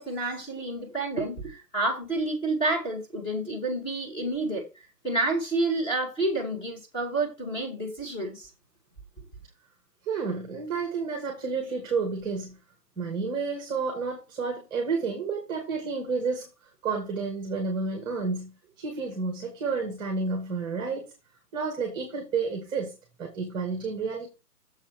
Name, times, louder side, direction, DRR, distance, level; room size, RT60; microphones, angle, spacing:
voice 1, 0.0-8.5, right 2 dB, 10° left, 2.4 m, -29 dB
voice 2, 10.1-12.6 13.0-16.5 16.8-21.1 21.5-24.3, right 4 dB, 10° right, 1.8 m, -30 dB
7.4 x 6.9 x 4.6 m
hypercardioid pair, 160°, 48 cm